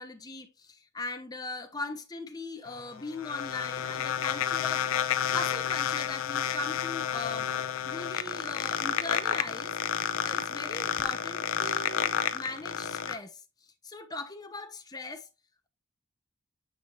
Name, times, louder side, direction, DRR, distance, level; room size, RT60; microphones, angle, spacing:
voice 1, 0.0-4.9 5.3-7.5 7.8-9.8 10.2-15.3, left 2 dB, 20° left, 0.9 m, -39 dB
sound 1, 2.7-13.1, left 9 dB, 70° left, 0.6 m, -30 dB
8.0 x 4.7 x 2.6 m
head